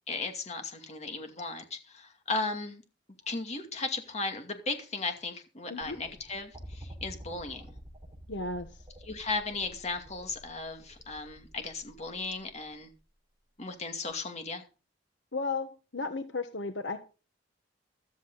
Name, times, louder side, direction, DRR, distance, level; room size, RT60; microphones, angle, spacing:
voice 1, 0.1-2.8 3.3-7.6 9.0-12.9 13.6-14.6, left 3 dB, 35° left, 5 dB, 2.5 m, -36 dB
sound 1, 5.8-13.0 14.1-14.2, equal, 20° right, 4.8 m, -49 dB
voice 2, 8.3-8.7 15.3-17.0, left 3 dB, 75° left, 8 dB, 1.3 m, -34 dB
14.5 x 13.0 x 4.0 m, 0.34 s
head